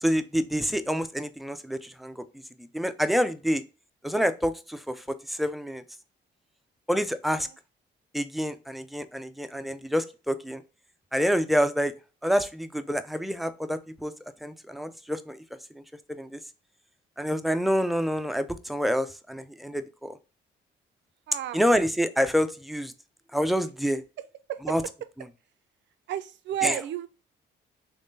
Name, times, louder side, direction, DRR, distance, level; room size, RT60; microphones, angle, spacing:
voice 1, 0.0-2.2 2.7-3.6 4.0-5.8 6.9-7.5 8.1-10.6 11.1-11.9 12.2-14.1 14.4-15.4 16.1-16.4 17.2-20.2 21.5-22.9 23.3-24.0 24.6-24.8 25.2-25.3 26.6-26.8, equal, ahead, 0.3 m, -27 dB
voice 2, 21.3-21.6 24.5-24.6 26.1-27.1, right 12 dB, 65° right, 0.4 m, -31 dB
3.5 x 3.2 x 2.6 m
cardioid pair, 90°, 20 cm